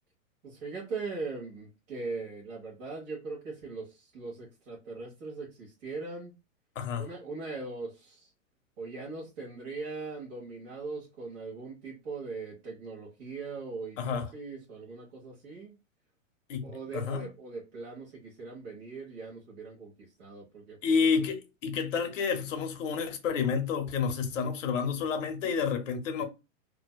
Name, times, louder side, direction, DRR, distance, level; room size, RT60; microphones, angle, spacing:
voice 1, 0.4-6.3 7.0-8.3 8.8-15.7 16.6-20.8, right 4 dB, 40° right, 1.0 m, -40 dB
voice 2, 6.8-7.1 14.0-14.3 16.5-16.7 16.9-17.2 20.8-26.2, left 6 dB, 70° left, 0.8 m, -29 dB
2.6 x 2.2 x 2.2 m
hypercardioid pair, 140°, 40 cm